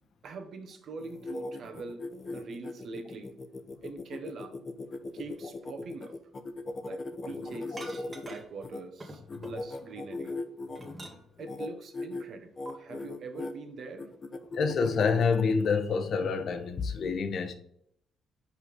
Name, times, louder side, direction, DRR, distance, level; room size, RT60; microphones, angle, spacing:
voice 1, 0.2-2.0 2.3-3.3 3.8-4.6 5.1-6.1 6.9-10.4 11.4-14.1, right 3 dB, 65° right, 5 dB, 1.3 m, -43 dB
sound 1, 1.0-8.8 9.3-10.9 11.4-11.7 11.9-12.2 12.6-13.5 14.0-15.7, left 2 dB, 40° left, 0.9 m, -39 dB
sound 2, 7.8-8.6 9.0-10.0 10.4-11.5 12.7-12.8, right 2 dB, 25° right, 1.5 m, -46 dB
voice 2, 14.5-17.5, left 5 dB, 60° left, 7 dB, 1.1 m, -27 dB
5.6 x 4.8 x 5.3 m, 0.71 s
cardioid pair, 90°, 0 cm